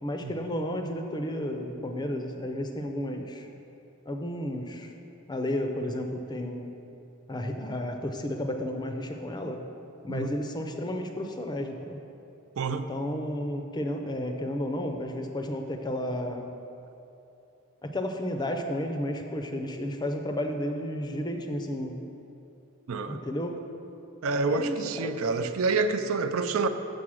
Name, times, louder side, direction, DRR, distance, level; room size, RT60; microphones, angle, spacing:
voice 1, 0.0-3.5 4.1-4.9 5.3-6.8 7.3-9.6 10.0-12.0 12.7-16.5 17.8-22.1 23.1-23.7 24.4-25.2, left 1 dB, 20° left, 4 dB, 0.5 m, -32 dB
voice 2, 12.6-12.9 22.9-23.2 24.2-26.7, right 4 dB, 65° right, 9 dB, 0.4 m, -28 dB
7.3 x 6.7 x 6.2 m, 2.9 s
head